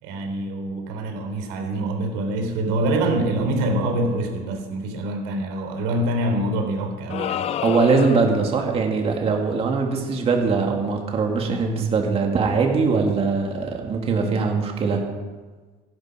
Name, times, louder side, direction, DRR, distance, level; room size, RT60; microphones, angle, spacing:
voice 1, 0.0-7.5, right 1 dB, 80° right, 4 dB, 3.3 m, -25 dB
sound 1, 7.1-8.5, left 10 dB, 30° left, 0.4 m, -28 dB
voice 2, 7.6-15.0, right 4 dB, 30° right, 2 dB, 2.3 m, -21 dB
15.5 x 12.0 x 5.1 m, 1.3 s
cardioid pair, 150°, 20 cm